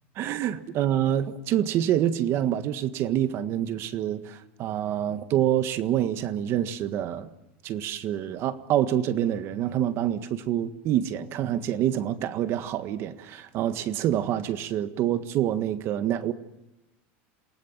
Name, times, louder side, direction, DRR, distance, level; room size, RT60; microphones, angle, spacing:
voice 1, 0.2-7.3 7.6-16.3, right 11 dB, 45° right, 11 dB, 1.6 m, -26 dB
28.5 x 18.5 x 7.4 m, 1.0 s
supercardioid pair, 145°, 6 cm